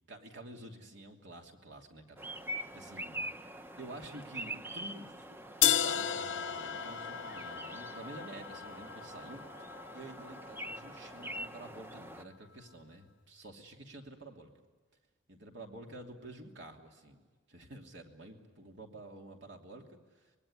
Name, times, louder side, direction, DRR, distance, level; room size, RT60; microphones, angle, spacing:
voice 1, 0.1-2.2 2.7-3.2 3.8-14.5 15.3-17.2 17.5-20.3, right 1 dB, 65° right, 2 dB, 2.9 m, -49 dB
sound 1, 2.2-12.2, right 1 dB, 10° right, 0.7 m, -44 dB
sound 2, 5.6-11.6, left 10 dB, 80° left, 0.8 m, -35 dB
25.0 x 21.5 x 9.9 m, 1.3 s
head